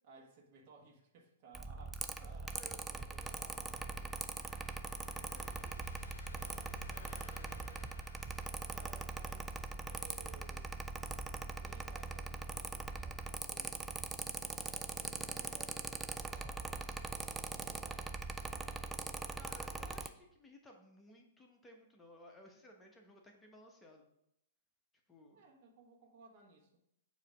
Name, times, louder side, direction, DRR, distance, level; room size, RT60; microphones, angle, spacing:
voice 1, 0.0-4.4 8.7-10.8 11.6-17.1 17.5-18.2 25.3-26.8, right 3 dB, 45° right, 1 dB, 1.3 m, -60 dB
Mechanical fan, 1.5-20.1, right 3 dB, 10° right, 0.4 m, -42 dB
voice 2, 2.2-3.3 4.5-4.8 5.1-5.7 6.3-6.6 6.8-7.9 19.3-24.1 25.1-25.4, left 1 dB, 15° left, 1 dB, 1.0 m, -59 dB
Car passing by / Engine, 3.5-10.2, left 4 dB, 85° left, 0.6 m, -57 dB
7.1 x 2.9 x 5.0 m, 0.78 s
hypercardioid pair, 115°, 0 cm